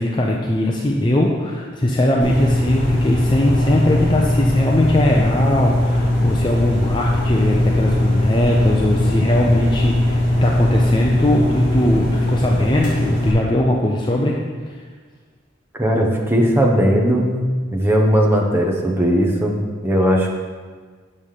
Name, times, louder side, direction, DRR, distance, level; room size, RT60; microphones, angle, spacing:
voice 1, 0.0-14.4, left 1 dB, 25° left, -1 dB, 0.5 m, -20 dB
sound 1, 2.2-13.3, left 1 dB, 40° left, 2.4 m, -19 dB
voice 2, 15.8-17.4 17.7-19.6 19.8-20.3, equal, 10° right, -1 dB, 0.9 m, -17 dB
7.5 x 5.4 x 4.9 m, 1.5 s
head